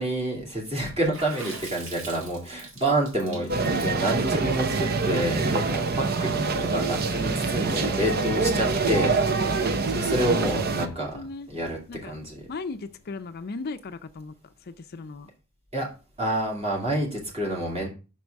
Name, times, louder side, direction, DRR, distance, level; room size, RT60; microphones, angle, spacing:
voice 1, 0.0-11.2 11.5-11.8 12.1-12.4 15.7-15.9 16.2-17.9, right 1 dB, 30° right, 2.4 m, -28 dB
Water / Splash splatter, 1.1-5.6, right 3 dB, 65° right, 1.8 m, -42 dB
voice 2, 3.2-4.4 8.2-8.9 10.7-11.5 11.9-12.2 12.5-14.3 14.6-15.3, left 3 dB, 45° left, 0.5 m, -38 dB
sound 1, 3.5-10.9, right 4 dB, 45° right, 0.6 m, -25 dB
sound 2, 5.9-13.6, left 2 dB, 15° left, 0.7 m, -57 dB
5.9 x 4.6 x 6.3 m
head